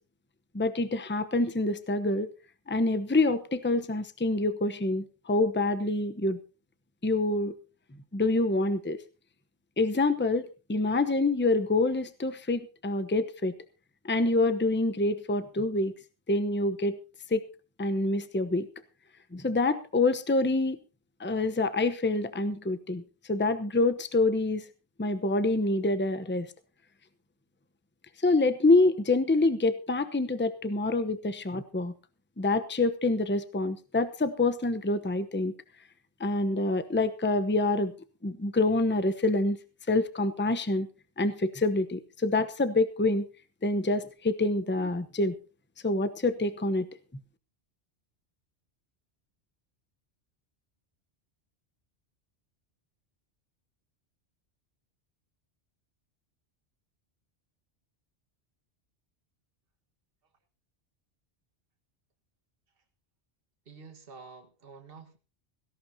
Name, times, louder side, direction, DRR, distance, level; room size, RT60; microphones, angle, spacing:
voice 1, 0.5-2.3 2.7-6.4 7.0-7.5 8.1-9.0 9.8-13.5 14.0-15.9 16.3-17.0 17.3-17.5 17.8-18.7 19.3-20.8 21.2-23.0 23.3-24.6 25.0-26.5 28.2-31.9 32.4-35.5 36.2-37.9 38.2-39.6 39.9-40.9 41.2-43.3 43.6-45.3 45.8-46.9, left 2 dB, 10° left, 11 dB, 0.8 m, -26 dB
voice 2, 63.7-65.2, right 4 dB, 55° right, 4 dB, 1.8 m, -49 dB
17.5 x 16.5 x 2.8 m, 0.33 s
omnidirectional pair, 1.1 m